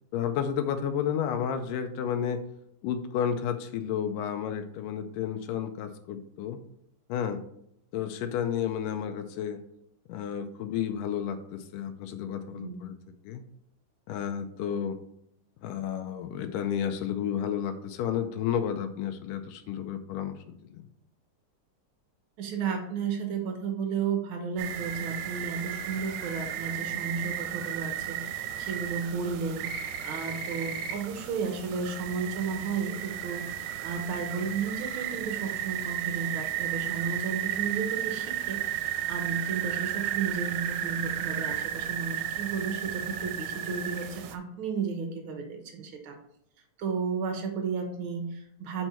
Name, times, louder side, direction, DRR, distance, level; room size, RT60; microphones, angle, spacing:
voice 1, 0.1-2.4 2.8-6.6 7.1-7.4 7.9-9.6 10.1-12.9 13.2-13.4 14.1-15.0 15.6-20.8, left 8 dB, 90° left, 7 dB, 2.2 m, -31 dB
voice 2, 22.4-46.2 46.8-48.9, right 5 dB, 70° right, 4 dB, 1.2 m, -33 dB
sound 1, 24.6-44.4, right 10 dB, 90° right, 2.2 m, -34 dB
7.8 x 4.5 x 4.3 m, 0.75 s
omnidirectional pair, 3.7 m